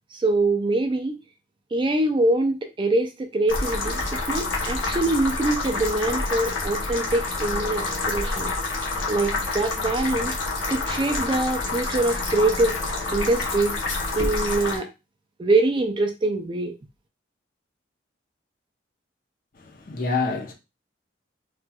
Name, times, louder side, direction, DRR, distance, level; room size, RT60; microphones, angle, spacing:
voice 1, 0.1-1.2 1.7-8.5 8.8-10.4 10.7-12.8 13.1-13.8 14.1-14.9 15.4-16.8, right 2 dB, 25° right, 0.3 m, -24 dB
sound 1, 3.5-14.8, left 3 dB, 85° left, 0.9 m, -28 dB
voice 2, 19.5-20.5, left 4 dB, 45° left, 0.6 m, -27 dB
4.2 x 2.3 x 2.2 m
head